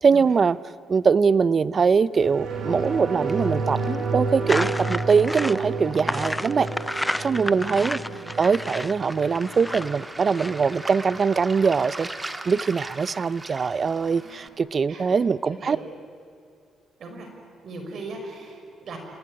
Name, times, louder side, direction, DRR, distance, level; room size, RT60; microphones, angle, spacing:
voice 1, 0.0-0.6 0.9-8.0 8.4-12.1 12.4-15.8, right 5 dB, 40° right, 18 dB, 0.7 m, -22 dB
sound 1, 2.2-11.2 11.5-11.6, right 3 dB, 80° right, 4.5 m, -31 dB
Waves surf, 2.5-14.5, right 2 dB, 20° right, 1.8 m, -42 dB
sound 2, 4.5-11.1, left 1 dB, 5° left, 0.6 m, -31 dB
voice 2, 7.4-8.3 14.2-14.5 14.9-15.1 15.5-15.8 17.0-17.3 17.6-19.0, right 3 dB, 60° right, 4 dB, 5.3 m, -39 dB
27.5 x 18.5 x 9.8 m, 2.4 s
cardioid pair, 90°, 0 cm